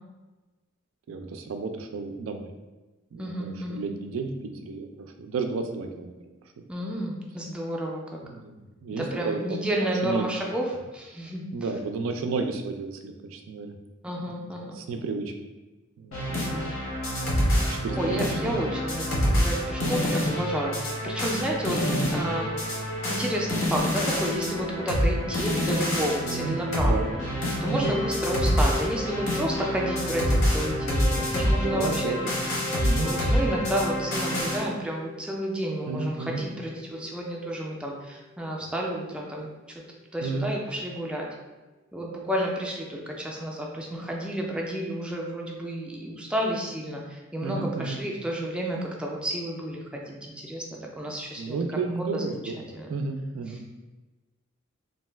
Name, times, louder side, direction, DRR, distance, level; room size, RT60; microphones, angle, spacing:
voice 1, 1.1-2.5 3.1-3.3 3.7-6.1 6.6-6.7 8.2-10.2 11.5-13.7 14.2-14.5 14.8-15.3 16.0-16.2 17.4-18.5 19.8-20.1 21.9-22.1 26.3-27.1 27.7-27.9 31.2-32.3 32.8-33.1 35.9-36.4 40.2-40.5 47.4-48.0 51.4-52.3 52.9-53.6, right 4 dB, 85° right, 5 dB, 0.4 m, -32 dB
voice 2, 3.2-3.8 6.7-8.2 9.0-11.4 14.0-14.8 16.3-16.7 18.0-27.1 27.6-32.2 32.9-39.8 40.1-41.3 41.9-50.7 51.0-51.6 52.0-52.9 53.5-53.6, right 1 dB, 5° right, -2 dB, 0.3 m, -31 dB
sound 1, 16.1-34.6, equal, 80° left, 0.8 m, -27 dB
sound 2, 27.8-39.0, left 3 dB, 55° left, 0.6 m, -39 dB
2.6 x 2.2 x 3.2 m, 1.2 s
head